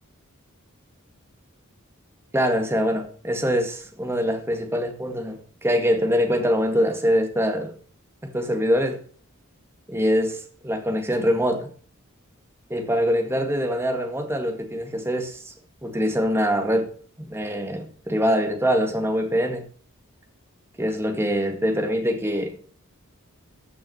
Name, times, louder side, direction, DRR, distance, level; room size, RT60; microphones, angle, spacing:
voice 1, 2.3-7.7 8.2-9.0 9.9-11.7 12.7-15.5 15.8-16.9 17.2-19.6 20.8-22.5, equal, 10° right, 1.9 m, -24 dB
14.0 x 6.4 x 5.6 m
head